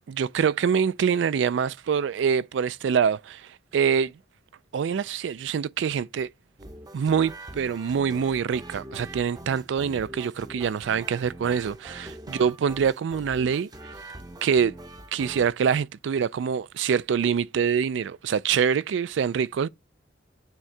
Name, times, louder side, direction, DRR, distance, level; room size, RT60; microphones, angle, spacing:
voice 1, 0.0-3.4 3.7-4.1 4.7-6.3 6.9-13.7 14.4-14.7 15.1-19.7, right 7 dB, 70° right, 0.3 m, -25 dB
sound 1, 6.6-15.5, right 1 dB, 20° right, 0.6 m, -43 dB
9.1 x 3.6 x 3.2 m
head